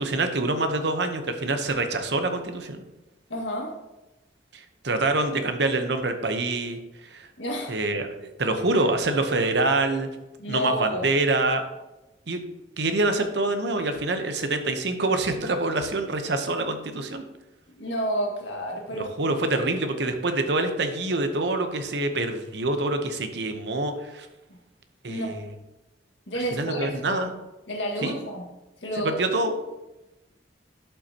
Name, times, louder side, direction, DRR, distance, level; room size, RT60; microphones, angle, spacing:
voice 1, 0.0-2.8 4.5-6.8 7.1-7.3 7.7-10.1 10.5-11.7 12.3-12.4 12.8-17.2 18.9-24.3 25.0-25.5 26.4-27.3 28.0-28.2 28.9-29.5, right 2 dB, 65° right, 7 dB, 0.9 m, -26 dB
voice 2, 3.3-3.7 7.4-7.8 8.7-8.9 10.4-11.1 17.7-19.1 24.5-24.6 25.1-25.4 26.3-26.8 27.1-27.3 27.7-28.5 28.8-29.2, equal, 90° left, 0 dB, 1.8 m, -30 dB
11.5 x 5.6 x 2.9 m, 1.0 s
head